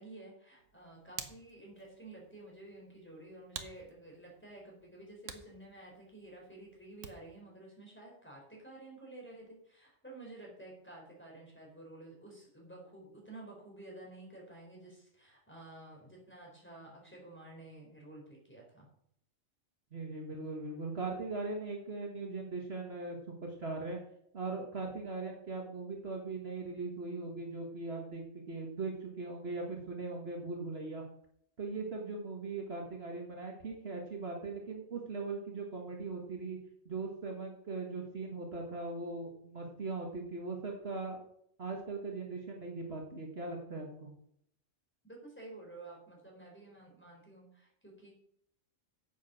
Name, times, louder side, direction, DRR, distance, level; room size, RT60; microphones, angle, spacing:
voice 1, 0.0-18.9 45.1-48.1, right 2 dB, 10° left, -2 dB, 4.3 m, -51 dB
Hands, 0.6-7.4, right 6 dB, 75° right, 1.4 m, -51 dB
voice 2, 19.9-24.0 24.3-31.0 31.6-36.6 36.9-41.2 41.6-44.1, right 3 dB, 50° right, 0 dB, 1.8 m, -40 dB
9.4 x 8.1 x 6.3 m, 0.70 s
omnidirectional pair, 1.3 m